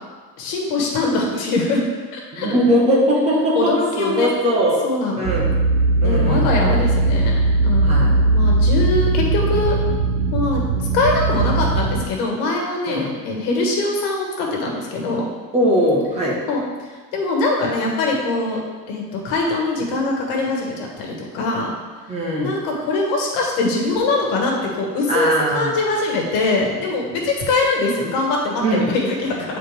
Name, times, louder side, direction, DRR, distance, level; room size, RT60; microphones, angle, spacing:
voice 1, 0.4-1.8 2.1-2.5 3.5-4.4 4.8-5.3 6.0-9.8 10.3-10.6 10.9-15.3 16.5-16.6 17.1-18.6 18.9-21.7 22.3-29.5, left 2 dB, 75° left, -1 dB, 1.6 m, -22 dB
voice 2, 2.3-3.7 4.0-4.8 5.2-5.5 6.0-6.5 7.8-8.1 12.9-13.1 15.5-16.4 22.1-22.5 25.1-25.7 28.6-28.9, equal, 15° right, -4 dB, 1.0 m, -19 dB
sound 1, 5.2-12.1, right 2 dB, 65° right, 0.6 m, -19 dB
8.7 x 4.1 x 3.3 m, 1.4 s
cardioid pair, 180°, 40 cm